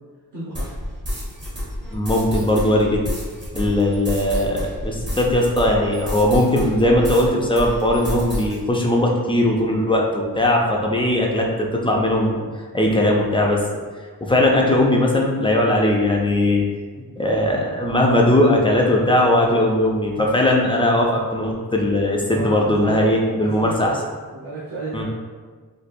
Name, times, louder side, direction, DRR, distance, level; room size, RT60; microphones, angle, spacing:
voice 1, 0.3-0.7 22.3-23.1 23.4-25.0, right 2 dB, 55° right, -11 dB, 0.9 m, -32 dB
sound 1, 0.5-7.3 7.5-8.5, equal, 30° right, 0.9 m, -29 dB
voice 2, 1.9-3.0 3.5-12.5 12.7-13.6 14.2-16.6 17.2-23.9 24.9-25.0, left 1 dB, 15° left, -1 dB, 0.3 m, -19 dB
4.2 x 2.5 x 2.5 m, 1.5 s
wide cardioid pair, 170°, 39 cm